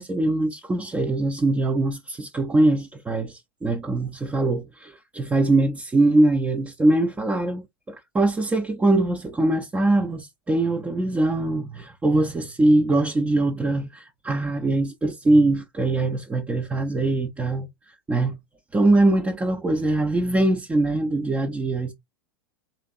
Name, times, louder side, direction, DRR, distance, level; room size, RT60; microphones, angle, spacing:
voice 1, 0.0-17.7 18.1-18.4 18.7-21.9, right 2 dB, 10° right, 0.6 m, -22 dB
4.2 x 3.2 x 2.5 m
figure-of-eight pair, 90°, 12 cm